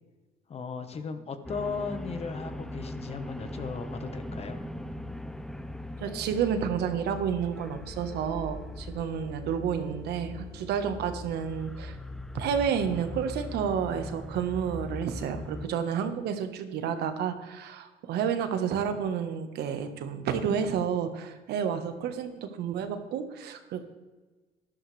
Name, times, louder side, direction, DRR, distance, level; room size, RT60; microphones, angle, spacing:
voice 1, 0.5-4.6, left 5 dB, 35° left, 9 dB, 1.3 m, -36 dB
sound 1, 1.4-15.7, left 1 dB, 5° left, 0.5 m, -40 dB
voice 2, 6.0-12.0 12.3-23.8, right 7 dB, 75° right, 8 dB, 1.3 m, -30 dB
12.5 x 11.5 x 3.4 m, 1.3 s
cardioid pair, 110°, 17 cm